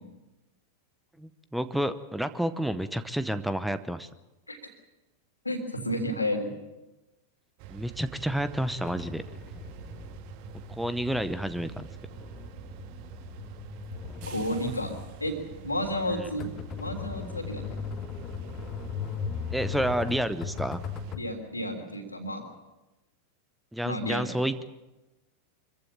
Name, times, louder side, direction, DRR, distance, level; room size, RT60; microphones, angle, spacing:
voice 1, 1.2-4.1 7.7-9.2 10.7-11.9 16.1-16.3 19.5-20.8 23.7-24.6, right 1 dB, ahead, 13 dB, 0.9 m, -30 dB
voice 2, 5.4-6.5 14.3-14.9 15.2-16.5 16.8-17.7 21.1-22.4 23.8-24.3, equal, 85° left, 5 dB, 3.3 m, -31 dB
sound 1, 7.6-21.1, right 11 dB, 45° right, 1.1 m, -45 dB
sound 2, 8.9-21.3, left 7 dB, 30° left, 1.7 m, -39 dB
25.0 x 15.0 x 8.8 m, 1.0 s
figure-of-eight pair, 90°, 0 cm